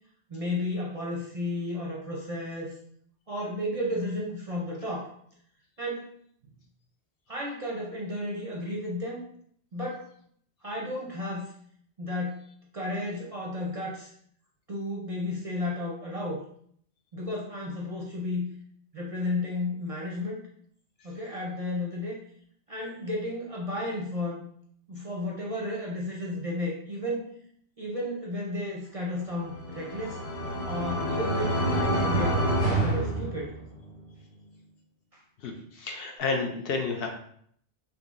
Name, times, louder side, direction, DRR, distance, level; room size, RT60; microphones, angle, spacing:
voice 1, 0.3-2.7 3.3-5.1 5.8-6.1 7.3-9.2 9.7-10.1 10.6-11.5 12.0-12.4 12.7-14.1 14.7-16.4 17.1-18.5 18.9-20.5 21.0-22.3 22.7-24.4 24.9-27.3 27.8-30.2 30.7-32.5 32.8-33.6 35.1-35.2, left 1 dB, 45° right, -3 dB, 0.5 m, -33 dB
sound 1, 29.3-33.9, right 1 dB, 40° left, 1.3 m, -27 dB
voice 2, 35.4-37.1, left 4 dB, 65° left, 2 dB, 0.8 m, -31 dB
3.7 x 2.8 x 2.5 m, 0.64 s
omnidirectional pair, 1.1 m